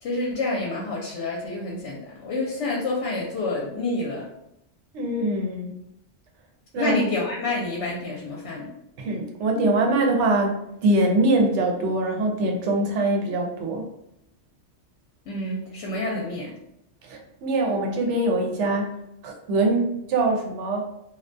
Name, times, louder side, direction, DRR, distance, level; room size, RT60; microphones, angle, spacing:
voice 1, 0.0-4.3 6.8-8.7 15.3-16.5, left 2 dB, 75° left, -3 dB, 0.8 m, -28 dB
voice 2, 4.9-5.7 6.7-7.0 9.0-13.9 17.0-19.0 19.2-20.9, right 2 dB, 85° right, 2 dB, 0.9 m, -23 dB
2.3 x 2.2 x 2.5 m, 0.82 s
omnidirectional pair, 1.2 m